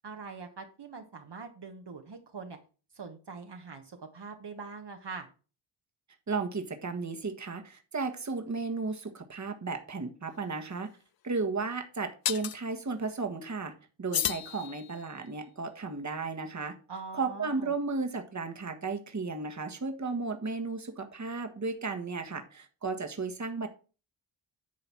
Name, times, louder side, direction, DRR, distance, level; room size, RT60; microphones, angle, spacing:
voice 1, 0.0-2.6 2.9-5.3 16.9-17.7, right 4 dB, 55° right, 3 dB, 1.4 m, -43 dB
voice 2, 6.3-10.9 11.2-13.7 14.0-16.7 17.1-23.7, right 4 dB, 35° right, 5 dB, 1.6 m, -34 dB
sound 1, 10.3-10.4 12.3-12.6 14.1-15.2, left 11 dB, 50° left, 0.5 m, -33 dB
10.5 x 3.9 x 6.1 m, 0.36 s
cardioid pair, 60°, 50 cm